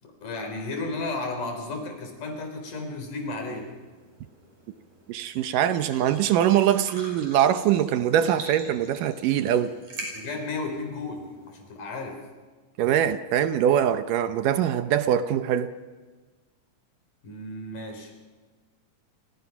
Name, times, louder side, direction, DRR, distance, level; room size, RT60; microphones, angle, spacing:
voice 1, 0.0-3.7 10.1-12.2 17.2-18.1, left 3 dB, 65° left, 4 dB, 5.3 m, -33 dB
sound 1, 3.1-11.6, right 2 dB, 55° right, 7.4 m, -45 dB
voice 2, 5.1-9.7 12.8-15.7, right 10 dB, 75° right, 10 dB, 2.4 m, -23 dB
30.0 x 25.0 x 5.9 m, 1.4 s
omnidirectional pair, 4.0 m